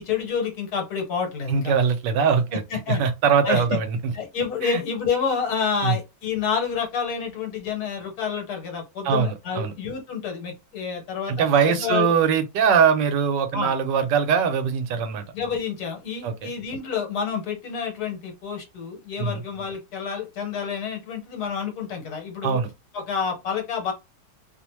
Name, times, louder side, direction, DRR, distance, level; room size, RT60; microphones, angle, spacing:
voice 1, 0.0-1.8 2.5-3.0 3.4-3.8 4.1-11.5 11.8-12.1 13.5-13.7 15.3-22.6 22.9-23.9, left 6 dB, 65° left, 1.4 m, -28 dB
voice 2, 1.5-2.6 2.9-4.1 4.6-4.8 5.8-6.0 9.0-9.7 11.3-15.2 16.2-16.5 19.2-19.4 22.4-22.7, right 6 dB, 80° right, 1.2 m, -22 dB
3.0 x 2.1 x 3.0 m
omnidirectional pair, 1.9 m